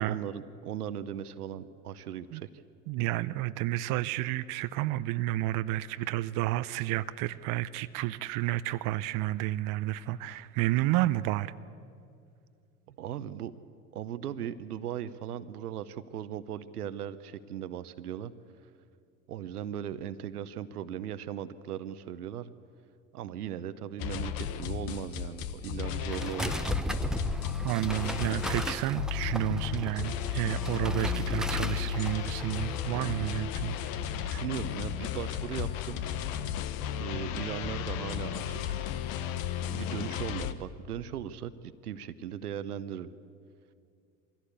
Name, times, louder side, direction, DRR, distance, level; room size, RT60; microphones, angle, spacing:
voice 1, 0.0-2.5 12.9-13.6 13.9-18.3 19.3-22.5 23.1-26.6 34.2-36.0 37.0-38.8 39.6-43.1, right 10 dB, 80° right, 13 dB, 1.0 m, -38 dB
voice 2, 2.9-11.5 27.6-33.8, right 16 dB, 45° right, 14 dB, 0.7 m, -31 dB
sound 1, 24.0-40.5, left 9 dB, 50° left, 1.2 m, -34 dB
sound 2, 26.1-33.4, equal, ahead, 1.0 m, -36 dB
23.0 x 16.0 x 8.3 m, 2.4 s
hypercardioid pair, 80°, 45 cm